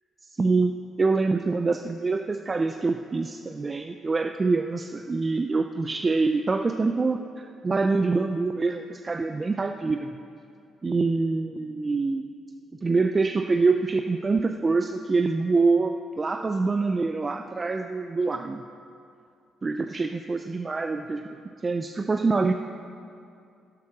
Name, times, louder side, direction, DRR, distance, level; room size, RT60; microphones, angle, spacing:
voice 1, 0.4-10.2 10.8-12.2 12.7-18.6 19.6-21.4 21.6-22.5, right 3 dB, 30° right, 6 dB, 0.4 m, -25 dB
10.5 x 8.5 x 6.0 m, 2.5 s
cardioid pair, 90°, 0 cm